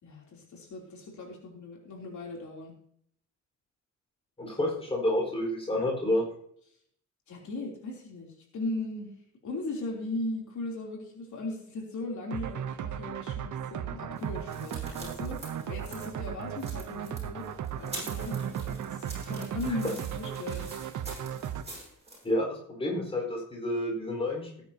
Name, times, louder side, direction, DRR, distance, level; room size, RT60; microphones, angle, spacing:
voice 1, 0.0-2.7 7.3-9.1 9.4-17.5 17.7-20.7, left 2 dB, 75° left, -1 dB, 3.3 m, -38 dB
voice 2, 4.4-6.2 22.2-24.6, left 1 dB, 20° left, -1 dB, 4.5 m, -29 dB
sound 1, 12.3-21.6, right 9 dB, 85° right, 0.9 m, -36 dB
sound 2, 14.2-22.2, right 2 dB, 20° right, 5.9 m, -45 dB
18.5 x 9.7 x 2.9 m, 0.66 s
wide cardioid pair, 170°, 30 cm